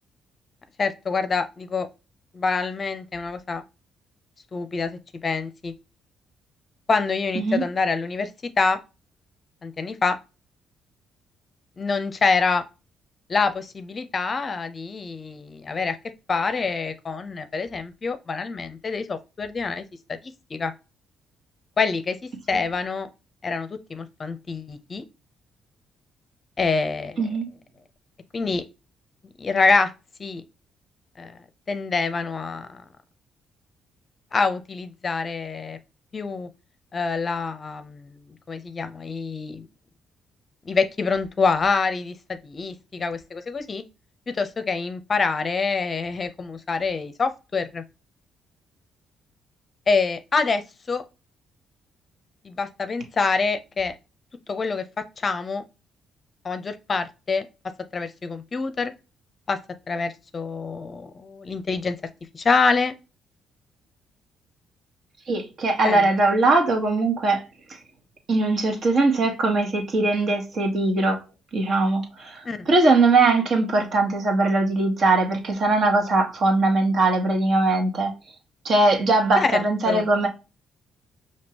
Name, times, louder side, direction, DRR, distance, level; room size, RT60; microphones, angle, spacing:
voice 1, 0.8-1.9 2.3-3.6 4.5-5.7 6.9-8.3 8.6-8.8 9.6-10.2 11.8-12.6 13.3-16.0 16.3-20.2 20.5-20.7 21.8-22.2 22.5-23.1 23.4-25.0 26.6-27.2 28.3-28.6 29.4-29.9 30.2-30.4 31.2-31.4 31.7-32.8 34.3-35.8 36.1-36.5 36.9-39.7 40.7-43.8 44.3-47.8 49.9-51.0 52.4-53.9 54.5-55.6 56.4-57.5 57.9-58.9 59.5-59.6 59.9-62.0 62.3-62.9 65.8-66.1 72.4-72.6 79.4-80.1, left 4 dB, 40° left, 0.6 m, -26 dB
voice 2, 65.3-67.4 68.3-71.2 71.5-78.1 78.6-80.3, right 2 dB, 55° right, 1.4 m, -21 dB
5.2 x 2.8 x 2.8 m
cardioid pair, 90°, 0 cm